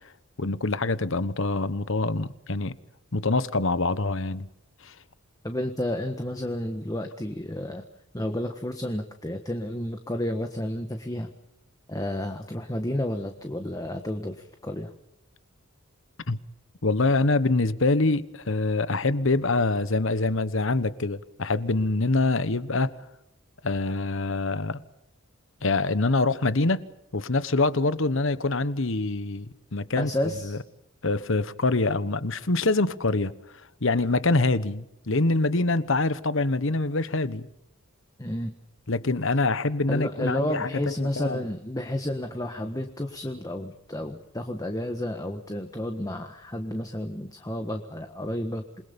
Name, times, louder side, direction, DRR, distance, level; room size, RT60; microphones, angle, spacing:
voice 1, 0.4-2.8 3.1-4.5 4.8-4.9 16.3-16.4 16.8-22.9 23.6-24.8 25.6-26.9 27.1-29.5 29.7-30.1 30.4-30.6 31.0-33.3 33.8-37.5 38.9-40.7 41.0-41.4, left 2 dB, 65° left, 1.2 m, -25 dB
voice 2, 5.4-7.8 8.1-11.3 11.9-14.9 30.0-30.6 38.2-38.5 39.9-48.8, left 1 dB, 15° left, 1.5 m, -31 dB
28.0 x 22.0 x 5.4 m
head